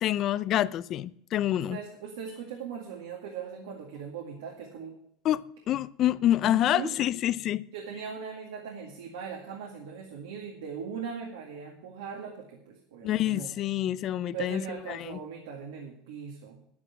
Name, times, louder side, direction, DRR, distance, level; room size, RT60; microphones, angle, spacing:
voice 1, 0.0-1.8 5.2-7.6 13.0-14.6 14.9-15.2, left 12 dB, 45° left, 0.5 m, -27 dB
voice 2, 1.7-4.9 6.4-6.9 7.7-13.5 14.3-16.6, right 7 dB, 90° right, 2.0 m, -39 dB
9.8 x 9.6 x 6.0 m
supercardioid pair, 120°, 0 cm